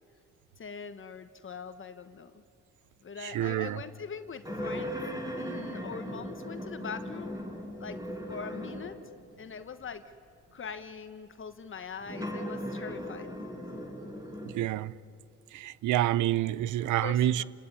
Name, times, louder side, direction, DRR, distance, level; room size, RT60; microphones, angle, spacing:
voice 1, 0.6-2.4 3.0-5.0 5.3-7.4 7.8-8.0 8.3-9.0 9.4-10.0 10.5-13.3 16.8-17.5, left 6 dB, 40° left, 1.3 m, -42 dB
voice 2, 3.3-3.8 14.5-14.9 15.5-17.4, right 13 dB, 80° right, 0.7 m, -27 dB
sound 1, 4.4-9.1 9.8-9.9 12.0-14.6, equal, 10° right, 5.8 m, -38 dB
29.5 x 18.0 x 9.7 m
cardioid pair, 90°, 30 cm